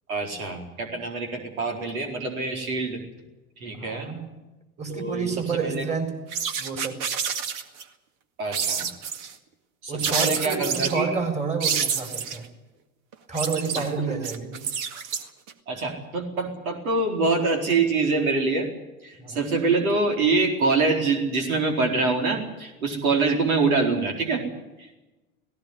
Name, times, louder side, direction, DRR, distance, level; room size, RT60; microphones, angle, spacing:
voice 1, 0.1-3.0 3.6-4.1 4.9-5.3 5.6-5.8 8.4-8.9 9.8-11.2 13.8-14.2 15.7-18.7 19.0-24.4 24.8-24.9, right 3 dB, 70° right, 2 dB, 4.4 m, -25 dB
voice 2, 3.7-4.3 4.8-6.1 6.6-7.0 9.9-12.5 13.3-14.6 19.2-19.4, right 5 dB, 15° right, 5 dB, 4.4 m, -29 dB
sound 1, 6.3-7.8 8.5-9.3 10.0-11.0 11.6-12.4 13.1-15.5, right 7 dB, 45° right, 2.0 m, -28 dB
18.0 x 17.5 x 9.6 m, 1.1 s
figure-of-eight pair, 85°, 44 cm